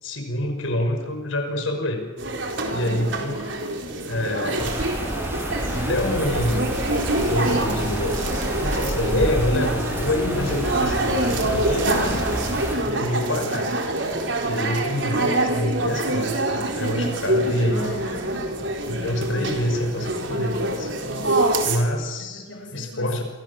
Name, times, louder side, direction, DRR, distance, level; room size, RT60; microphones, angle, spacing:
voice 1, 0.0-2.1 2.7-3.5 4.1-4.8 5.7-6.8 7.2-8.1 8.6-12.3 12.9-13.7 14.4-18.0 18.9-20.9 21.7-23.2, left 1 dB, 90° left, 5 dB, 6.0 m, -26 dB
sound 1, 2.2-21.8, right 2 dB, 70° right, 4.3 m, -26 dB
voice 2, 2.5-3.1 11.9-12.2 17.7-18.6 21.1-21.6 22.2-23.2, left 2 dB, 70° left, 2 dB, 7.5 m, -40 dB
sound 2, 4.6-12.8, equal, 10° right, 8.0 m, -28 dB
27.5 x 24.5 x 7.3 m, 1.3 s
head